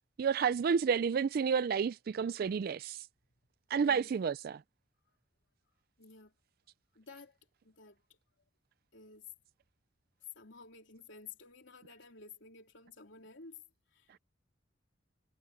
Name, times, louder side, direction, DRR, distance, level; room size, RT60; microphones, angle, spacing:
voice 1, 0.2-3.1 3.7-4.6, right 6 dB, 50° right, 0.3 m, -30 dB
voice 2, 6.0-6.3 7.0-7.3 7.6-8.0 8.9-9.3 10.4-13.6 14.0-14.1, left 4 dB, 75° left, 3.7 m, -53 dB
head